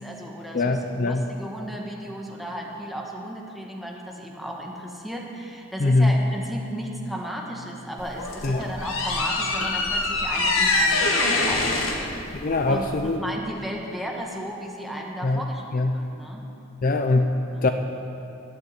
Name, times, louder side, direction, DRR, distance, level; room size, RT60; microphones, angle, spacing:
voice 1, 0.0-16.4 17.5-17.6, equal, ahead, -1 dB, 1.5 m, -35 dB
voice 2, 0.5-1.2 5.8-6.1 8.4-8.6 12.3-13.2 15.2-15.4 15.7-16.0 16.8-17.3 17.6-17.7, left 2 dB, 45° left, 6 dB, 0.6 m, -22 dB
sound 1, 8.0-13.2, left 2 dB, 85° left, 1.7 m, -24 dB
12.5 x 9.1 x 8.1 m, 2.8 s
head